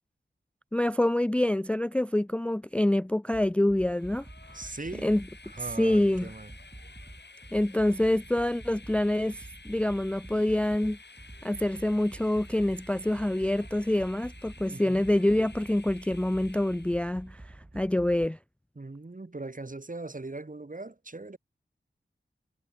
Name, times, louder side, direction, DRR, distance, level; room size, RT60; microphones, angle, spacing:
voice 1, 0.7-4.2 5.0-5.2 5.6-6.3 7.5-11.0 11.4-17.4 17.7-18.4, left 1 dB, 5° left, 0.4 m, -26 dB
sound 1, 3.3-18.3, right 1 dB, 30° right, 5.1 m, -48 dB
Train, 3.8-17.2, left 3 dB, 65° left, 6.8 m, -52 dB
voice 2, 4.5-5.1 5.4-6.5 14.7-15.1 18.7-21.4, right 2 dB, 45° right, 3.1 m, -40 dB
wide cardioid pair, 45°, 19 cm